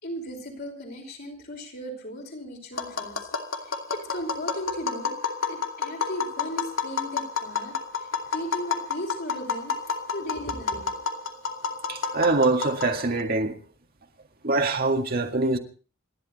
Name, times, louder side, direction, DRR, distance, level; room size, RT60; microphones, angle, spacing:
voice 1, 0.0-3.3 3.6-5.2 5.5-9.7 10.1-11.0, equal, 55° left, 5.4 m, -37 dB
Tap, 2.8-13.2, left 5 dB, 75° left, 2.4 m, -30 dB
voice 2, 11.9-13.6 14.4-15.6, right 3 dB, 45° right, 2.0 m, -24 dB
28.0 x 11.5 x 4.2 m
head